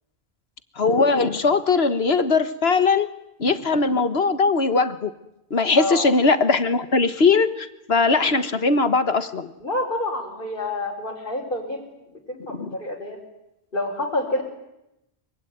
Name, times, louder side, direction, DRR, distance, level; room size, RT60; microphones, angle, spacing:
voice 1, 0.8-3.1 3.4-5.1 5.5-9.5 12.5-12.8, left 4 dB, 65° left, 10 dB, 1.7 m, -20 dB
voice 2, 5.8-6.1 9.6-11.8 12.1-13.2 13.7-14.4, left 1 dB, 50° left, -3 dB, 4.8 m, -28 dB
25.0 x 24.0 x 9.5 m, 0.89 s
omnidirectional pair, 1.1 m